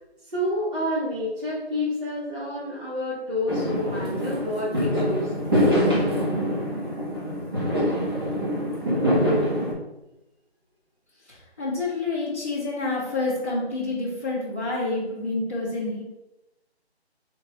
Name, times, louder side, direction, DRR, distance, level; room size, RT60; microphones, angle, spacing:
voice 1, 0.3-5.3, left 1 dB, 50° right, -8 dB, 1.2 m, -29 dB
Fireworks, 3.5-9.7, equal, 20° right, 0.8 m, -24 dB
voice 2, 11.3-16.0, left 2 dB, 15° left, -12 dB, 0.8 m, -28 dB
4.3 x 3.3 x 2.9 m, 0.97 s
figure-of-eight pair, 170°, 33 cm